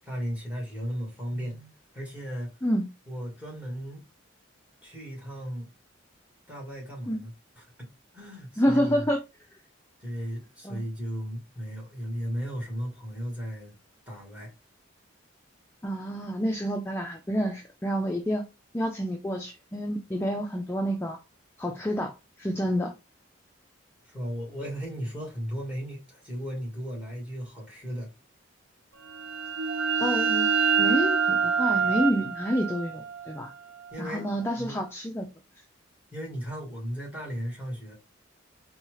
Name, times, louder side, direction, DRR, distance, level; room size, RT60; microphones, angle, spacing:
voice 1, 0.0-2.5 3.1-4.0 4.8-5.7 6.5-7.3 7.6-9.0 10.0-13.7 14.1-14.5 24.0-28.1 33.9-34.8 36.1-37.9, equal, 5° right, 1.7 m, -36 dB
voice 2, 8.6-9.2 10.6-10.8 15.8-18.4 18.7-21.2 21.6-22.9 30.0-30.5 30.8-33.5 34.0-35.3, equal, 10° left, 0.3 m, -28 dB
sound 1, 29.1-34.6, right 5 dB, 60° right, 0.4 m, -27 dB
4.2 x 2.3 x 3.1 m
head